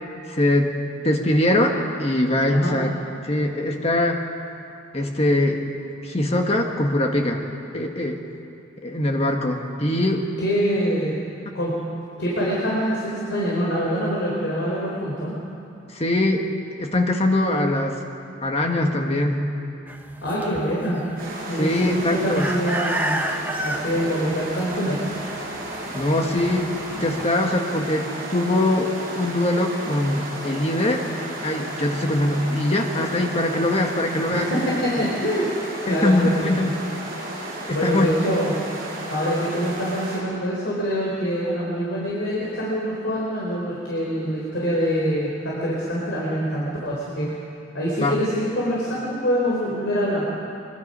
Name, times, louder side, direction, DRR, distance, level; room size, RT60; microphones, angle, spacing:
voice 1, 0.3-0.8 1.0-2.9 3.2-4.2 4.9-5.6 6.0-7.4 7.7-8.2 8.8-10.3 15.9-16.5 16.8-18.0 18.4-19.5 21.5-22.5 25.9-31.0 31.4-34.5 35.9-36.7 37.7-38.1 48.0-48.1, left 1 dB, 30° left, 3 dB, 1.6 m, -22 dB
voice 2, 10.4-11.2 11.5-11.7 12.2-15.3 20.2-21.0 21.5-23.2 23.6-25.0 34.3-35.5 35.8-36.6 37.7-38.5 39.1-47.4 47.7-50.2, equal, 65° left, -5 dB, 4.0 m, -25 dB
sound 1, 19.9-27.2, right 1 dB, 10° right, 0.8 m, -32 dB
sound 2, 21.2-40.2, right 1 dB, 45° right, 6.2 m, -34 dB
23.5 x 22.5 x 5.5 m, 2.7 s
head